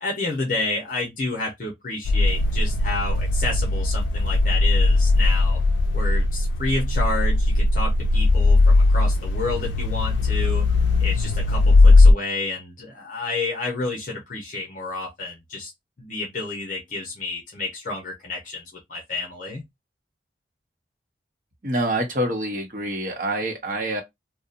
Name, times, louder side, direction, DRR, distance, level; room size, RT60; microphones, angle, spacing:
voice 1, 0.0-5.6 5.9-10.7 11.0-15.7 16.0-18.6 18.9-19.6, left 3 dB, 50° left, 0.7 m, -30 dB
sound 1, 2.0-12.1, left 2 dB, 90° left, 0.3 m, -18 dB
voice 2, 21.6-24.0, right 1 dB, 50° right, 0.9 m, -26 dB
2.7 x 2.1 x 2.4 m
head